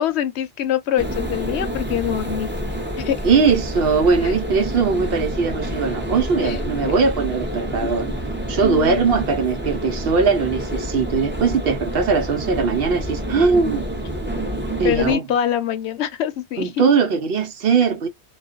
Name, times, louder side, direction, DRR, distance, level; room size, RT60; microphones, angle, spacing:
voice 1, 0.0-2.5 3.0-3.2 4.2-4.3 6.4-6.6 7.8-7.9 8.6-9.0 14.8-16.8, left 10 dB, 80° left, 0.9 m, -24 dB
sound 1, 1.0-15.2, equal, 15° right, 0.6 m, -28 dB
voice 2, 3.2-8.1 8.5-13.9 14.8-15.2 16.6-18.1, right 5 dB, 65° right, 0.8 m, -20 dB
2.4 x 2.2 x 2.4 m
omnidirectional pair, 1.1 m